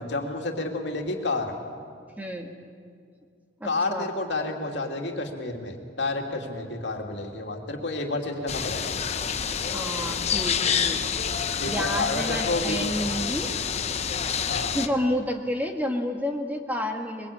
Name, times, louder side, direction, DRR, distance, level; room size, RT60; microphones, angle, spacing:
voice 1, 0.0-1.5 3.6-8.9 11.6-12.8 14.5-14.7, left 2 dB, 65° left, 2 dB, 2.8 m, -30 dB
voice 2, 2.2-2.5 3.6-4.1 9.7-11.1 11.6-13.5 14.7-17.3, equal, 10° right, 3 dB, 1.6 m, -30 dB
sound 1, 8.5-14.9, left 7 dB, 35° left, 0.9 m, -28 dB
23.0 x 22.5 x 8.7 m, 2.2 s
head